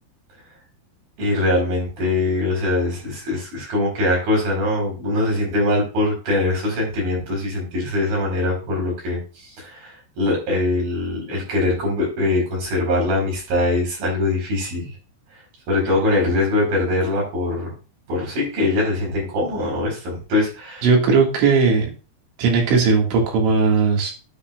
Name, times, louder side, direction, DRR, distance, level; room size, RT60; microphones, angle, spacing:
voice 1, 1.2-9.2 9.6-14.9 15.7-17.7 18.1-20.9, left 2 dB, 50° right, -2 dB, 6.1 m, -22 dB
voice 2, 20.8-21.9 22.4-24.1, right 4 dB, 80° right, 0 dB, 4.4 m, -17 dB
9.5 x 8.5 x 2.4 m, 0.33 s
omnidirectional pair, 5.4 m